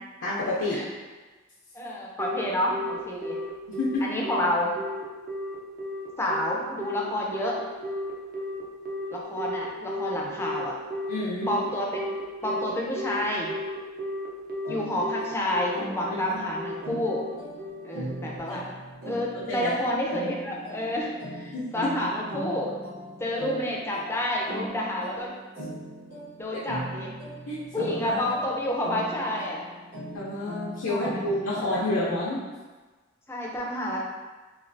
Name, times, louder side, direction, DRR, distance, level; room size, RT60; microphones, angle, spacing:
voice 1, 0.2-0.8 3.8-4.0 11.1-11.5 18.5-18.6 19.5-19.7 21.5-21.9 26.5-26.6 27.5-28.2 30.1-32.4, left 2 dB, 75° left, -8 dB, 0.6 m, -29 dB
voice 2, 1.7-3.4 4.0-4.7 6.2-7.6 9.1-10.7 11.5-12.1 12.4-13.6 14.7-17.2 17.8-18.6 19.1-22.7 23.2-25.3 26.4-27.1 27.7-29.6 30.9-31.2 31.6-32.0 33.3-34.0, left 1 dB, 15° left, -2 dB, 0.4 m, -29 dB
Telephone, 2.2-18.4, left 1 dB, 45° right, 0.5 m, -34 dB
sound 1, 14.6-32.1, equal, 70° right, 1.2 m, -39 dB
3.1 x 2.3 x 2.6 m, 1.3 s
head